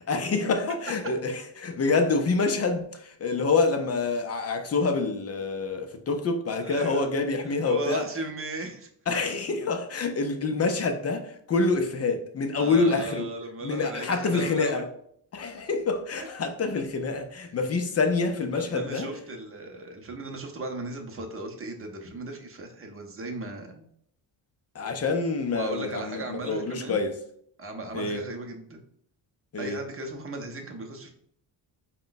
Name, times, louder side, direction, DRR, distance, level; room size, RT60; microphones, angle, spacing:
voice 1, 0.1-8.0 9.1-13.3 13.6-14.9 15.3-19.1 24.7-27.2 27.9-28.2 29.5-29.8, left 4 dB, 35° left, 0.4 m, -27 dB
voice 2, 6.6-7.1 7.4-8.9 12.5-14.9 16.2-16.3 18.5-23.9 25.5-27.0 27.6-28.8 29.6-31.1, right 2 dB, 30° right, 0.7 m, -36 dB
5.0 x 2.2 x 3.8 m
cardioid pair, 145°, 47 cm